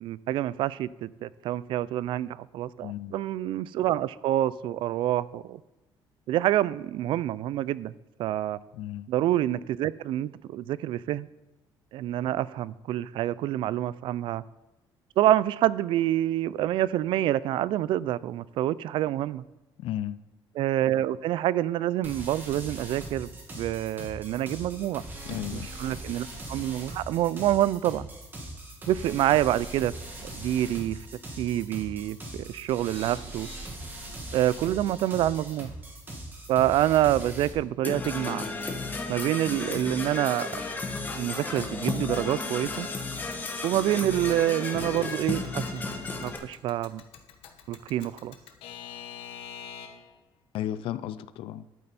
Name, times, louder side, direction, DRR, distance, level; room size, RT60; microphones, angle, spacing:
voice 1, 0.0-5.6 6.3-7.9 8.2-8.6 9.1-11.3 11.9-14.4 15.2-19.4 20.5-23.3 23.5-25.0 25.3-28.1 28.9-29.9 30.4-31.0 31.4-33.5 34.3-35.7 36.5-38.5 39.1-40.5 41.1-42.9 43.6-45.9 46.2-47.0 47.7-48.3, right 13 dB, 65° right, 0.3 m, -27 dB
voice 2, 2.8-3.1 8.7-9.1 19.8-20.2 25.3-25.7 50.5-51.6, left 12 dB, 75° left, 0.4 m, -34 dB
sound 1, 22.0-37.5, right 1 dB, 20° right, 1.7 m, -40 dB
Percussion / Brass instrument, 37.8-46.4, left 3 dB, 20° left, 1.1 m, -33 dB
Alarm / Clock, 38.0-50.2, left 8 dB, 90° left, 1.1 m, -48 dB
11.0 x 8.7 x 4.1 m
cardioid pair, 175°, 9 cm